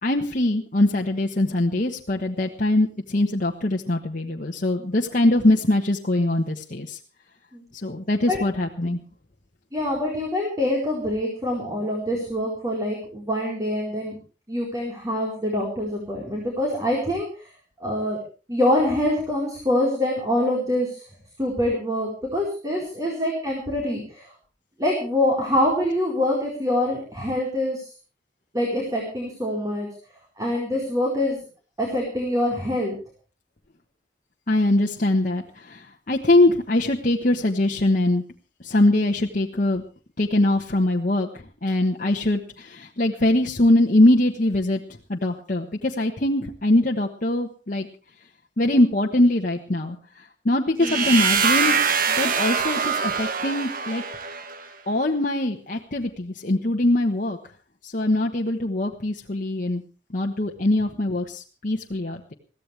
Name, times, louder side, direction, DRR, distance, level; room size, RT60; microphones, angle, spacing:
voice 1, 0.0-7.0 7.8-9.0 34.5-38.2 38.6-39.8 40.2-44.8 45.1-47.9 48.6-51.8 52.1-54.0 54.9-57.4 57.8-59.8 60.1-62.3, left 1 dB, 50° left, 0 dB, 1.2 m, -22 dB
voice 2, 9.7-14.2 14.5-17.5 17.8-18.2 18.5-21.0 21.4-24.3 24.8-27.9 28.5-29.9 30.4-31.4 31.8-33.0 50.8-51.1, left 1 dB, 20° right, -2 dB, 4.4 m, -25 dB
sound 1, 50.8-54.7, right 6 dB, 50° right, 1.3 m, -23 dB
22.0 x 15.5 x 3.4 m, 0.35 s
head